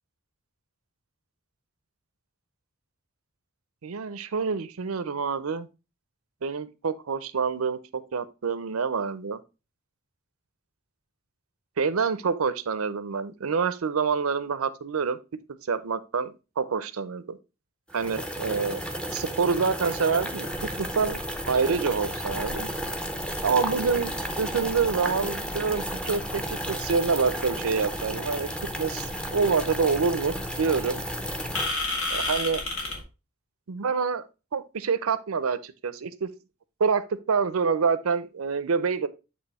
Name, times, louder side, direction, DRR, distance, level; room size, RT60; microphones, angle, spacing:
voice 1, 3.8-5.7 6.4-9.4 11.8-15.2 15.7-17.4 17.9-18.8 19.1-21.2 21.5-22.7 23.4-31.0 32.1-32.6 33.7-34.2 34.5-36.3 36.8-39.1, right 5 dB, 90° right, 0.6 m, -27 dB
sound 1, 17.9-31.7, equal, 5° left, 0.6 m, -33 dB
sound 2, 20.5-33.0, left 2 dB, 70° left, 2.0 m, -37 dB
8.1 x 3.1 x 4.1 m
head